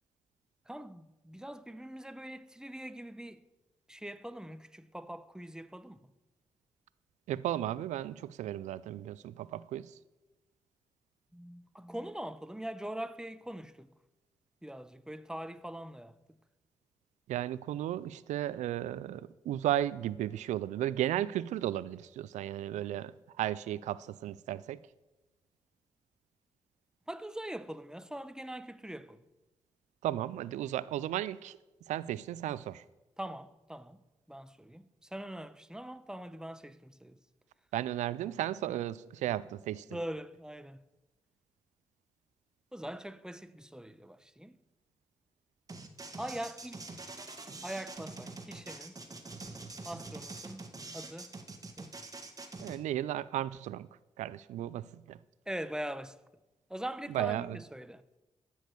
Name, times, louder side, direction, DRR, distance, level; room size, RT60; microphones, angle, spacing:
voice 1, 0.7-3.4 3.9-6.0 11.3-13.9 14.6-16.2 27.1-29.2 33.2-34.0 34.3-37.2 39.9-40.8 42.7-44.6 46.2-46.8 47.6-48.9 49.8-50.6 50.9-51.3 51.8-51.9 55.5-56.2 56.7-58.0, right 1 dB, 5° right, 0.8 m, -42 dB
voice 2, 7.3-9.9 17.3-23.1 23.4-24.8 30.0-31.6 31.9-32.8 37.7-39.8 52.6-53.9 54.2-55.2 57.1-57.6, right 12 dB, 85° right, 0.4 m, -34 dB
sound 1, 45.7-52.8, right 3 dB, 30° right, 1.6 m, -45 dB
12.5 x 6.4 x 6.7 m
supercardioid pair, 45°, 12 cm